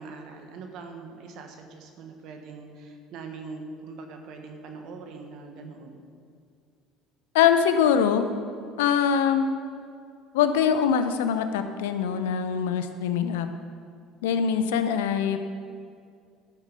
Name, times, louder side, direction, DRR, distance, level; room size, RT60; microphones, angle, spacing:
voice 1, 0.0-6.0, right 4 dB, 65° right, 4 dB, 1.3 m, -42 dB
voice 2, 7.3-8.3 8.8-9.5 10.3-13.5 14.2-15.4, left 8 dB, 85° left, 9 dB, 0.7 m, -23 dB
12.0 x 6.8 x 5.2 m, 2.3 s
supercardioid pair, 80°, 0 cm